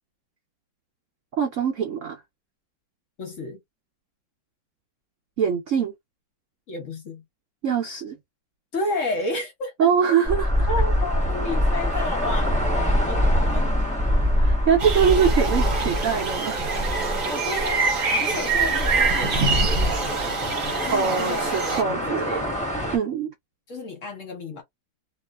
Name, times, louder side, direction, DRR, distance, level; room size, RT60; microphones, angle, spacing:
voice 1, 1.4-2.2 5.4-5.9 7.6-8.2 9.8-10.7 14.4-16.8 20.9-22.5 22.9-23.3, right 7 dB, 80° right, 0.6 m, -23 dB
voice 2, 3.2-3.6 6.7-7.2 8.7-9.9 10.7-12.6 13.1-13.8 17.3-19.7 20.8-22.2 22.4-22.6 23.7-24.6, left 2 dB, 50° left, 1.1 m, -32 dB
sound 1, 10.2-23.0, equal, 5° left, 0.9 m, -25 dB
sound 2, 14.8-21.8, right 4 dB, 55° right, 1.1 m, -25 dB
3.0 x 2.4 x 2.2 m
omnidirectional pair, 2.0 m